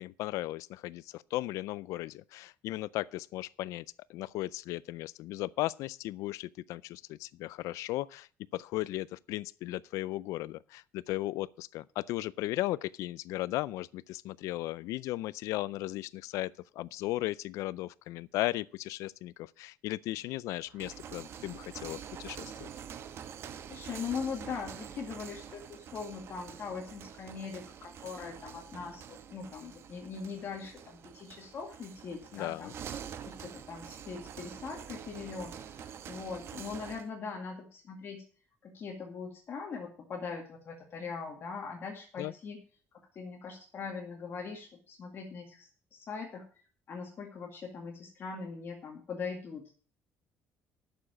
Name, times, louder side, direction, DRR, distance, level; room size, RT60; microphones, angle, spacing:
voice 1, 0.0-8.3 8.5-22.7 32.3-32.7 42.2-42.3, left 17 dB, 85° left, 0.4 m, -36 dB
sound 1, 20.7-37.1, right 8 dB, 55° right, 1.1 m, -46 dB
voice 2, 23.7-32.7 33.3-38.2 38.6-42.6 42.9-46.5 46.9-49.8, left 5 dB, 45° left, 2.2 m, -41 dB
11.0 x 7.0 x 6.4 m
cardioid pair, 115°, 5 cm